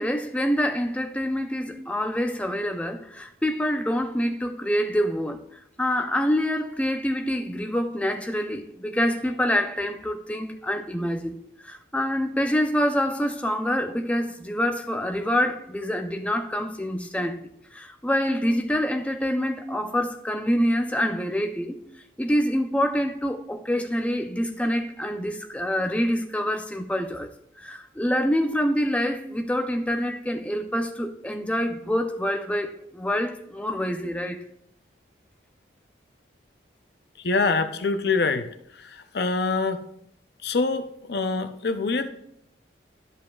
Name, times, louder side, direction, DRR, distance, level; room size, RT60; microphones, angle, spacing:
voice 1, 0.0-5.4 5.8-17.4 17.7-21.8 22.2-27.3 27.6-34.4, equal, 5° left, 0.5 m, -26 dB
voice 2, 37.2-38.5 38.7-39.8 40.4-42.1, left 3 dB, 60° left, 0.6 m, -25 dB
12.0 x 5.4 x 2.3 m
head